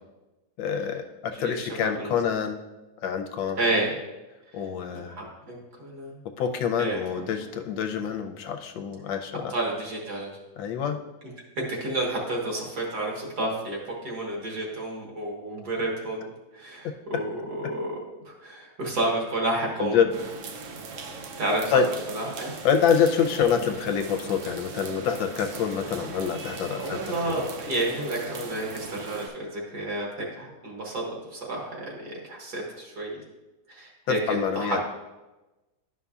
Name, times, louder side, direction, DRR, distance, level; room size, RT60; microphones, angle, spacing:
voice 1, 0.6-2.6 3.0-3.6 4.5-5.2 6.4-9.5 10.6-11.0 16.8-16.9 19.8-20.1 21.7-21.9 22.6-27.5 34.1-34.8, left 7 dB, 80° left, 6 dB, 1.3 m, -26 dB
voice 2, 1.3-2.1 3.6-4.0 5.0-6.2 6.8-7.2 9.5-10.4 11.6-17.9 18.3-20.0 21.4-22.5 26.8-33.2 33.7-34.8, right 1 dB, 60° right, -1 dB, 1.8 m, -30 dB
sound 1, 20.1-29.3, right 4 dB, 80° right, 0.7 m, -39 dB
11.0 x 5.4 x 2.4 m, 1.1 s
omnidirectional pair, 2.1 m